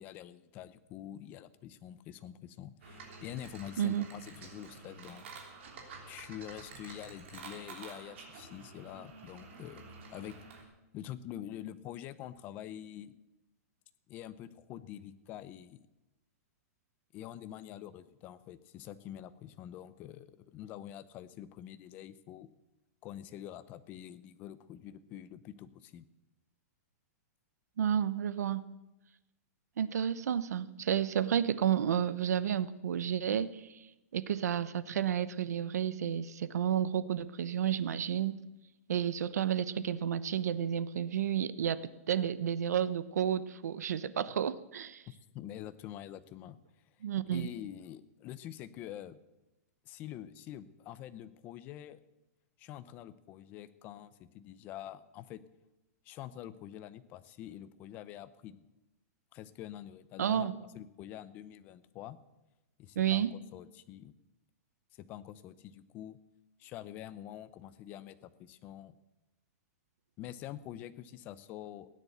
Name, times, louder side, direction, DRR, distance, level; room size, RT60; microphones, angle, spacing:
voice 1, 0.0-5.5 6.1-9.8 10.1-10.7 10.9-13.1 14.1-15.8 17.1-22.5 23.0-26.0 45.3-46.6 47.3-49.2 49.8-52.0 52.6-55.4 56.0-58.7 59.3-60.5 60.7-62.2 62.8-64.1 64.9-66.2 66.6-68.9 70.2-71.9, left 11 dB, 20° left, 14 dB, 0.6 m, -46 dB
sound 1, 2.8-10.6, right 4 dB, 45° right, 3.3 m, -50 dB
voice 2, 27.8-28.7 29.8-33.7 34.1-38.4 38.9-45.0 47.0-47.5 60.2-60.5 63.0-63.3, right 9 dB, 90° right, 16 dB, 0.9 m, -31 dB
16.5 x 10.0 x 8.0 m, 0.99 s
hypercardioid pair, 175°, 9 cm